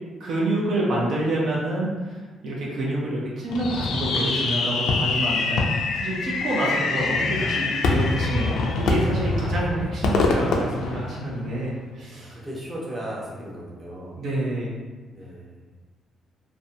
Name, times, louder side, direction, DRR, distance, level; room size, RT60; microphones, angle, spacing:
voice 1, 0.2-5.7 5.9-12.4 14.2-14.7, right 1 dB, 65° right, -5 dB, 0.6 m, -27 dB
Fireworks, 3.5-11.6, left 3 dB, 80° left, 0.3 m, -25 dB
sound 1, 6.9-9.2, left 2 dB, 5° left, 0.5 m, -37 dB
voice 2, 9.3-9.7 12.1-14.2 15.1-15.7, right 1 dB, 20° right, -6 dB, 0.8 m, -37 dB
2.5 x 2.2 x 2.6 m, 1.3 s
cardioid pair, 90°, 0 cm